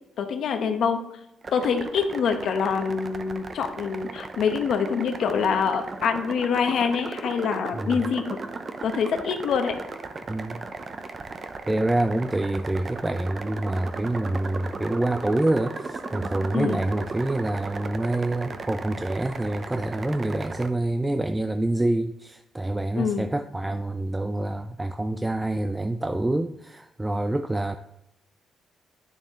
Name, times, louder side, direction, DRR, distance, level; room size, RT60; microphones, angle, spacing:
voice 1, 0.2-1.0 1.5-8.4 8.8-9.7 16.5-16.8 23.0-23.3, left 6 dB, 70° left, 6 dB, 1.0 m, -25 dB
sound 1, 1.4-20.7, right 3 dB, 40° right, 0.7 m, -36 dB
voice 2, 10.3-10.6 11.7-27.8, right 2 dB, 10° right, 8 dB, 0.4 m, -26 dB
9.3 x 6.7 x 3.1 m, 0.81 s
cardioid pair, 90°, 0 cm